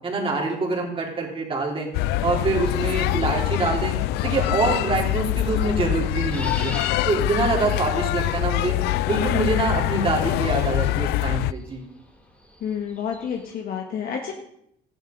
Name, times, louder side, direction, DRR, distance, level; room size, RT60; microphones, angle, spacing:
voice 1, 0.0-1.9 2.2-3.9 4.2-6.7 7.1-8.8 9.1-11.8, right 3 dB, 30° right, -1 dB, 3.9 m, -25 dB
sound 1, 1.9-11.5, left 15 dB, 85° left, 0.4 m, -24 dB
sound 2, 6.1-13.5, left 1 dB, 10° left, 3.6 m, -43 dB
voice 2, 12.6-14.3, left 7 dB, 60° left, 1 dB, 1.7 m, -29 dB
14.5 x 11.0 x 5.4 m, 0.74 s
cardioid pair, 110°, 17 cm